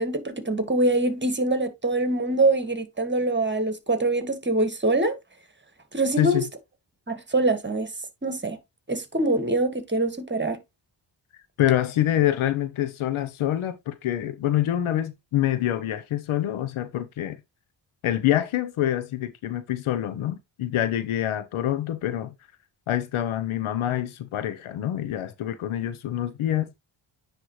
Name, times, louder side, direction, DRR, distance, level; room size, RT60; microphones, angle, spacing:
voice 1, 0.0-5.1 5.9-6.4 7.1-7.9 8.2-8.6 8.9-10.6, right 2 dB, 20° right, 1.7 m, -24 dB
voice 2, 6.2-6.5 11.6-17.4 18.0-22.3 22.9-26.7, left 12 dB, 80° left, 0.9 m, -26 dB
9.7 x 3.3 x 3.1 m
supercardioid pair, 45°, 49 cm